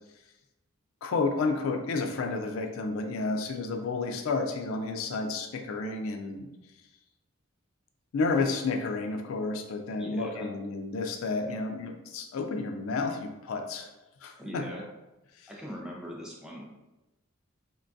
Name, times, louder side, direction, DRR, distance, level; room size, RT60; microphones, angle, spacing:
voice 1, 1.0-6.5 8.1-13.9 14.2-14.6 15.4-15.5, left 3 dB, 70° left, 5 dB, 0.3 m, -31 dB
voice 2, 10.0-10.5 11.4-11.5 14.4-14.8 15.5-16.6, equal, 5° right, -2 dB, 0.4 m, -40 dB
3.2 x 2.2 x 2.5 m, 1.0 s
head